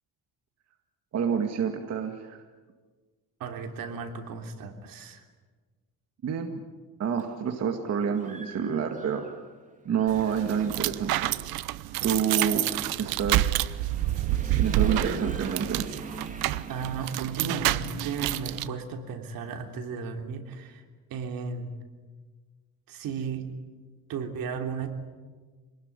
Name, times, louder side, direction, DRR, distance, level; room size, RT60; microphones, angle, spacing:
voice 1, 1.1-2.4 6.2-6.6 7.0-9.3 9.9-11.3 12.0-12.7 13.0-13.5 14.6-15.9, right 7 dB, 45° right, 4 dB, 2.0 m, -28 dB
voice 2, 3.4-5.3 16.7-20.8 21.1-21.7 22.9-23.5 24.1-24.9, right 5 dB, 75° right, 5 dB, 3.3 m, -35 dB
Human voice / Motorcycle, 7.2-7.3 7.8-9.6 9.9-18.5, right 3 dB, 20° right, 2.5 m, -43 dB
sound 1, 10.1-18.7, right 15 dB, 90° right, 0.9 m, -28 dB
26.5 x 19.5 x 9.8 m, 1.4 s
cardioid pair, 145°, 35 cm